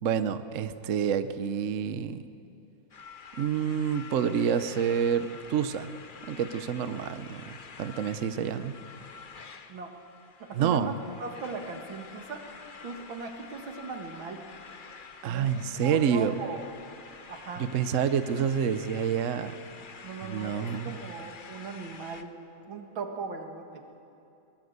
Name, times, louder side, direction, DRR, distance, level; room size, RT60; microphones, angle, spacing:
voice 1, 0.0-2.3 3.4-5.9 6.3-8.8 10.5-11.0 15.2-16.4 17.6-19.6 20.2-21.0, right 8 dB, 55° right, 12 dB, 0.9 m, -28 dB
sound 1, 2.9-22.2, left 5 dB, 40° left, 0.7 m, -48 dB
voice 2, 9.7-10.0 10.4-10.9 11.2-12.4 12.8-14.4 15.2-16.6 17.3-17.6 20.0-22.3 22.7-23.8, right 4 dB, 80° right, 4 dB, 2.6 m, -38 dB
22.5 x 20.5 x 8.1 m, 2.7 s
omnidirectional pair, 2.1 m